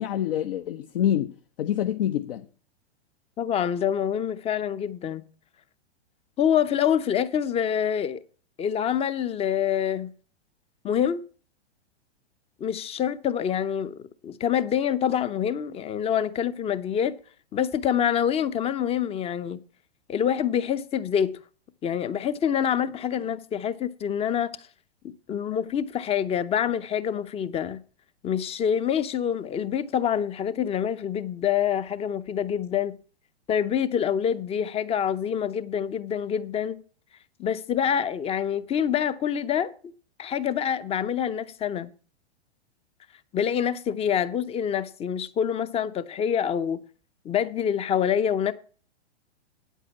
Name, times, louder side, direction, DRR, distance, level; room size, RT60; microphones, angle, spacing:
voice 1, 0.0-1.3 1.6-2.4, left 11 dB, 55° left, 0.9 m, -26 dB
voice 2, 3.4-5.2 6.4-8.2 8.6-10.1 10.8-11.2 12.6-17.2 17.5-19.6 20.1-21.4 21.8-24.5 25.0-27.8 28.2-33.0 33.5-36.8 37.4-39.7 40.2-41.9 43.3-46.8 47.2-48.5, left 8 dB, 20° left, 0.7 m, -26 dB
9.2 x 8.3 x 7.0 m
hypercardioid pair, 115°, 34 cm